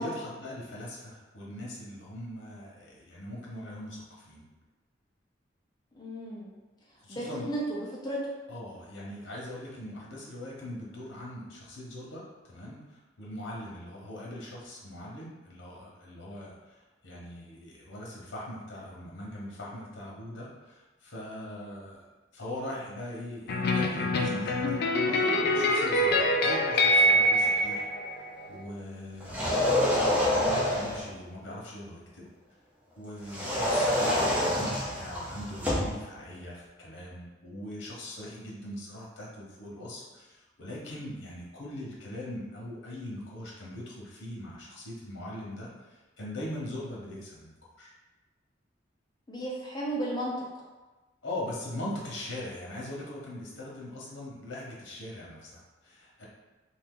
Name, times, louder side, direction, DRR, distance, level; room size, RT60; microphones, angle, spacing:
voice 1, 0.0-4.4 7.0-7.5 8.5-22.1 22.3-27.8 28.1-29.8 30.3-32.2 32.9-47.9 51.2-56.3, left 1 dB, 85° left, -4 dB, 1.0 m, -41 dB
voice 2, 5.9-6.5 7.1-8.3 49.3-50.5, right 1 dB, 20° left, -5 dB, 0.8 m, -34 dB
sound 1, 23.5-28.6, left 1 dB, 60° left, 0.4 m, -25 dB
sound 2, 29.2-31.1 33.3-36.0, left 1 dB, 10° right, 0.7 m, -27 dB
2.8 x 2.7 x 3.7 m, 1.2 s
head